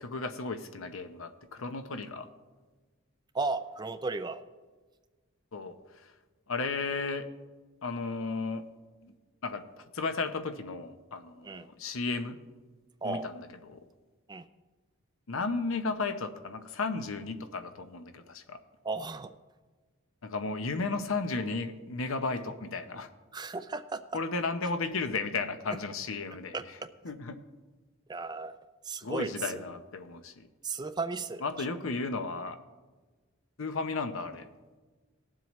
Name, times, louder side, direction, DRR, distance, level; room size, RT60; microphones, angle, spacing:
voice 1, 0.0-2.3 5.5-6.1 6.5-7.3 7.8-8.7 9.0-9.1 9.4-9.7 9.9-12.4 13.0-13.8 15.3-18.6 20.2-23.1 24.1-26.6 27.0-27.4 29.0-30.5 31.4-32.6 33.6-34.5, left 3 dB, 75° left, 9 dB, 0.8 m, -34 dB
voice 2, 3.3-4.4 11.4-11.7 13.0-13.3 14.3-14.4 18.8-19.3 23.3-24.0 26.5-26.6 28.1-28.6 28.8-29.6 30.6-31.4, right 3 dB, 20° right, 11 dB, 0.4 m, -34 dB
19.0 x 7.6 x 3.1 m, 1.3 s
head